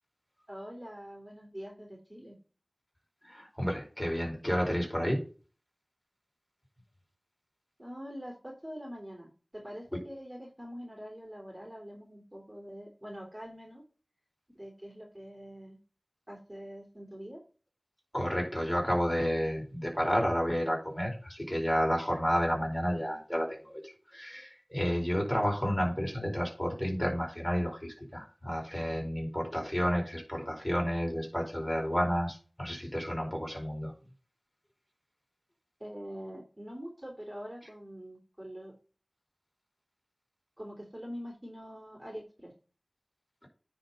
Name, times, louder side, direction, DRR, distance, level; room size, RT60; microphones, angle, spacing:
voice 1, 0.5-2.4 7.8-13.8 14.5-15.8 16.3-17.4 35.8-38.7 40.6-42.5, equal, 25° right, 0 dB, 3.3 m, -44 dB
voice 2, 3.2-5.2 18.1-33.9, equal, 15° left, 0 dB, 5.0 m, -31 dB
9.7 x 4.4 x 5.4 m, 0.36 s
wide cardioid pair, 50°, 0 cm